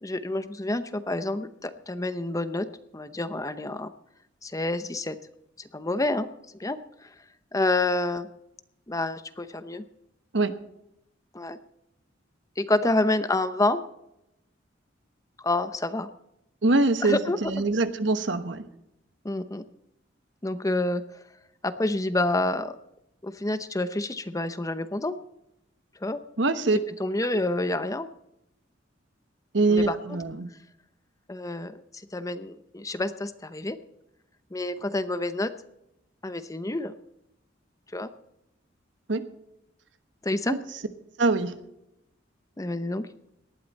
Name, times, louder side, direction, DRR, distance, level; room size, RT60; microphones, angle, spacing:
voice 1, 0.0-2.7 2.9-3.9 4.4-5.2 5.7-6.3 6.6-7.1 7.5-8.3 8.9-9.8 11.3-11.6 12.6-13.8 15.4-16.1 17.0-17.6 19.2-19.6 20.4-21.0 21.6-22.7 23.2-25.2 26.0-26.2 27.0-28.1 29.7-30.0 31.3-31.8 32.1-33.8 34.5-35.5 36.2-36.9 37.9-38.1 40.2-40.6 42.6-43.1, left 2 dB, 20° left, 11 dB, 0.7 m, -28 dB
voice 2, 16.6-18.7 26.4-26.8 27.3-27.4 29.5-30.5 39.1-39.3 40.5-40.6 41.2-41.5, right 3 dB, 70° right, 10 dB, 1.2 m, -24 dB
18.5 x 12.0 x 4.2 m, 0.83 s
head